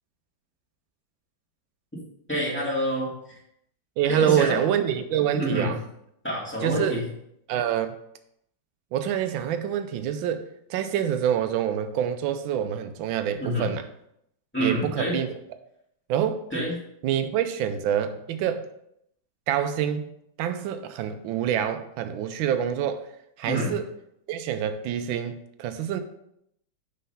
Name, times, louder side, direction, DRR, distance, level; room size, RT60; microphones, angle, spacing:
voice 1, 2.3-3.1 4.1-4.7 5.3-5.7 6.2-7.0 13.4-13.7 14.5-15.2 16.5-16.8 23.5-23.7, equal, 5° left, 2.5 m, -27 dB
voice 2, 4.0-5.8 6.6-6.9 7.5-7.9 8.9-13.8 14.6-15.3 16.1-16.4 17.0-18.7 19.5-20.1 20.4-23.1 23.4-23.8 24.3-26.0, right 9 dB, 90° right, 1.4 m, -26 dB
5.6 x 4.2 x 5.5 m
omnidirectional pair, 2.1 m